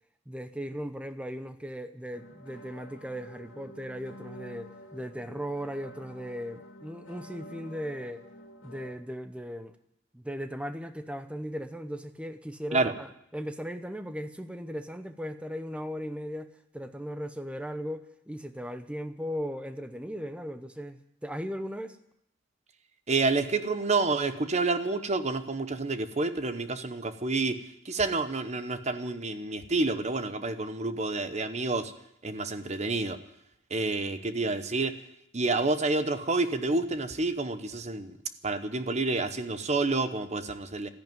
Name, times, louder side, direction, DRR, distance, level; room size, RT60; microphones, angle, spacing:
voice 1, 0.3-8.3 8.6-9.7 10.1-22.0, equal, 5° right, 9 dB, 0.8 m, -37 dB
sound 1, 2.1-8.9, equal, 90° left, 2.6 m, -49 dB
voice 2, 23.1-31.9 32.2-33.2 33.7-35.0 35.3-38.2 38.4-40.9, right 3 dB, 35° right, 10 dB, 0.9 m, -29 dB
13.5 x 11.0 x 9.2 m, 0.78 s
head